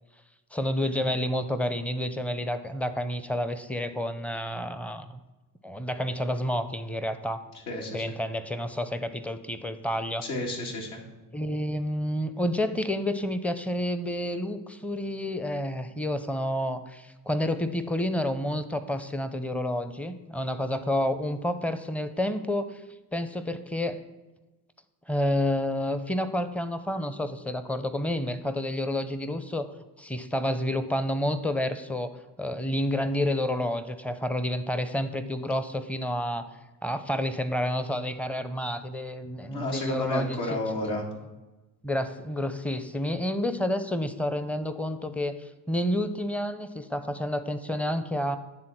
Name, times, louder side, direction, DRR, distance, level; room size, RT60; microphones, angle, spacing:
voice 1, 0.5-5.1 5.6-7.4 7.9-10.2 11.3-22.8 23.1-24.0 25.1-29.7 30.0-32.1 32.4-36.5 36.8-40.4 41.8-48.4, left 1 dB, 5° left, 11 dB, 0.5 m, -29 dB
voice 2, 7.7-8.1 10.2-11.0 39.4-41.1, left 1 dB, 75° left, -1 dB, 2.1 m, -32 dB
9.7 x 3.7 x 5.9 m, 1.1 s
hypercardioid pair, 65°, 50 cm